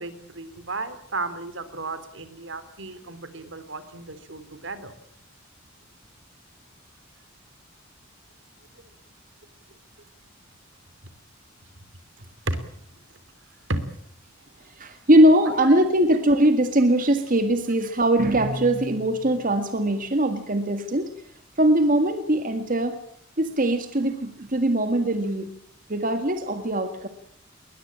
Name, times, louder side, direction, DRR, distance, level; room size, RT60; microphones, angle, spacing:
voice 1, 0.0-4.9 12.5-12.6 13.7-14.0 15.5-15.6 16.1-16.2, right 2 dB, 65° right, 13 dB, 2.9 m, -33 dB
voice 2, 14.6-21.1 21.6-23.0 23.4-25.5 25.9-27.1, right 1 dB, 45° right, 7 dB, 1.8 m, -21 dB
21.0 x 20.5 x 8.7 m, 0.70 s
head